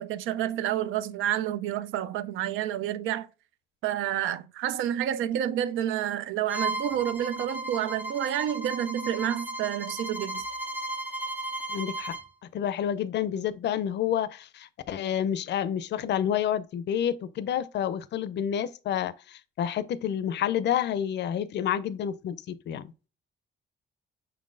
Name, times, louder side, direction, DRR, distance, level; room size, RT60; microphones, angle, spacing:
voice 1, 0.0-3.3 3.8-10.4, right 11 dB, 85° right, 0.4 m, -29 dB
Bowed string instrument, 6.5-12.3, right 2 dB, 10° right, 0.7 m, -35 dB
voice 2, 11.7-12.2 12.5-22.9, left 9 dB, 60° left, 0.4 m, -29 dB
5.5 x 3.7 x 2.5 m
cardioid pair, 90°, 20 cm